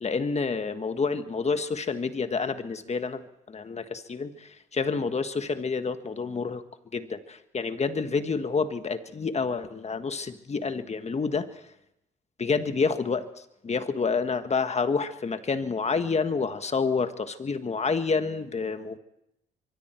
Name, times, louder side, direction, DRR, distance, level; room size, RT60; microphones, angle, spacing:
voice 1, 0.0-6.6 6.9-11.5 12.4-19.0, left 4 dB, 35° left, 9 dB, 1.5 m, -28 dB
25.0 x 23.0 x 4.5 m, 0.81 s
cardioid pair, 90°, 20 cm